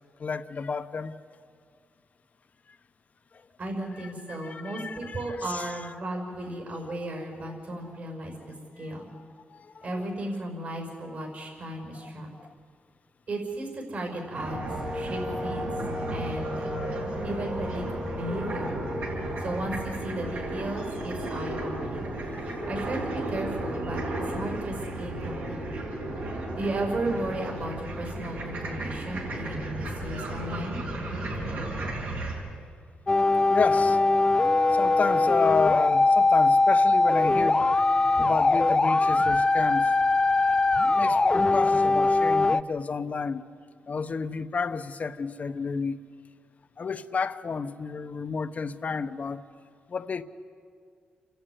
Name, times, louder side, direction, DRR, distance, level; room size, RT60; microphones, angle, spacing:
voice 1, 0.2-1.1 4.0-5.7 8.8-8.9 9.2-9.3 9.5-9.9 12.0-12.1 12.4-12.5 16.7-17.1 20.7-20.8 22.3-22.7 33.5-34.0 34.7-37.6 38.2-39.9 40.8-43.4 43.9-46.0 46.8-49.4 49.9-50.2, left 5 dB, 50° left, 0.9 m, -31 dB
voice 2, 3.6-9.1 9.8-12.3 13.3-14.6 14.9-15.7 16.1-16.8 17.2-17.8 18.1-18.8 19.4-22.1 22.7-24.0 24.3-25.9 26.6-30.8, right 1 dB, 55° right, 5.8 m, -35 dB
sound 1, 14.3-32.3, right 1 dB, 80° right, 6.5 m, -34 dB
sound 2, 14.7-20.8, left 2 dB, 20° right, 1.9 m, -37 dB
sound 3, 33.1-42.6, left 3 dB, 25° left, 0.5 m, -21 dB
29.0 x 11.5 x 9.6 m
cardioid pair, 80°, 3 cm